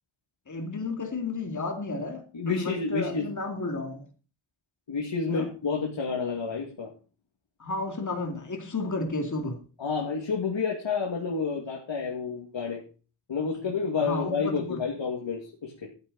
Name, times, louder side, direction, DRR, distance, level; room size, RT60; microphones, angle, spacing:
voice 1, 0.5-4.0 5.3-5.5 7.6-9.6 13.7-14.8, left 3 dB, 35° left, 2.4 m, -32 dB
voice 2, 2.3-3.3 4.9-6.9 9.8-12.8 13.3-15.9, left 5 dB, 65° left, 2.3 m, -29 dB
13.5 x 8.7 x 4.1 m
wide cardioid pair, 105°, 49 cm